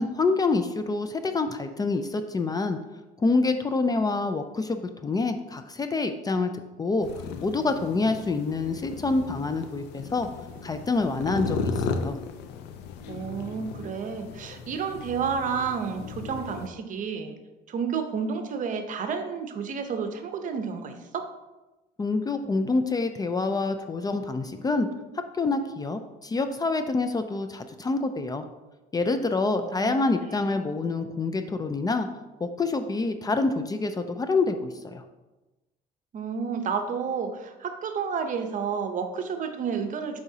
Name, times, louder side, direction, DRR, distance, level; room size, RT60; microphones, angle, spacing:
voice 1, 0.0-2.8 3.2-6.5 6.8-10.3 10.6-12.2 22.0-24.9 25.4-28.4 28.9-32.1 32.4-35.0, left 3 dB, 20° left, 8 dB, 0.4 m, -27 dB
sound 1, 7.0-16.7, left 4 dB, 85° left, 0.5 m, -35 dB
voice 2, 13.1-17.3 17.7-21.3 29.5-30.6 36.1-40.2, right 6 dB, 50° right, 7 dB, 0.8 m, -31 dB
7.0 x 4.9 x 2.8 m, 1.1 s
cardioid pair, 110°, 17 cm